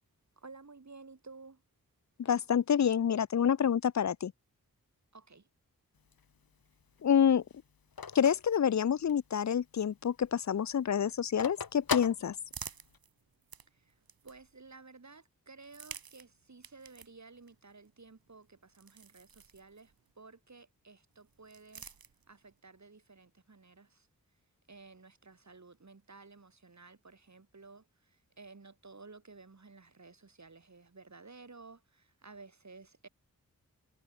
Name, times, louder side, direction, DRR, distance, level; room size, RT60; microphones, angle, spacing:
voice 1, 0.4-1.6 5.1-5.5 13.7-13.9 14.2-21.9 22.3-24.1 24.7-33.1, right 4 dB, 50° right, 4.3 m, -54 dB
voice 2, 2.2-4.3 7.0-7.4 8.1-12.4, left 8 dB, 50° left, 0.5 m, -27 dB
Telephone, 5.9-9.4 9.8-9.9 10.1-13.0, left 6 dB, 80° left, 2.1 m, -39 dB
sound 1, 11.7-14.7 15.5-20.1 21.1-22.6, right 6 dB, 80° right, 1.7 m, -52 dB
wide cardioid pair, 60°, 35 cm